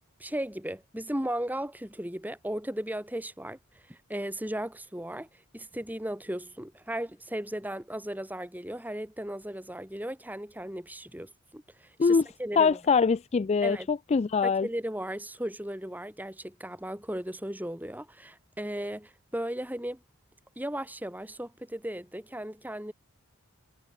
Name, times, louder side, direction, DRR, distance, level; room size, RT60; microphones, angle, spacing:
voice 1, 0.2-3.6 3.9-5.3 5.5-12.8 13.6-13.9 14.4-20.0 20.6-22.9, right 1 dB, 10° right, 5.9 m, -36 dB
voice 2, 12.6-14.7, left 5 dB, 30° left, 0.3 m, -23 dB
head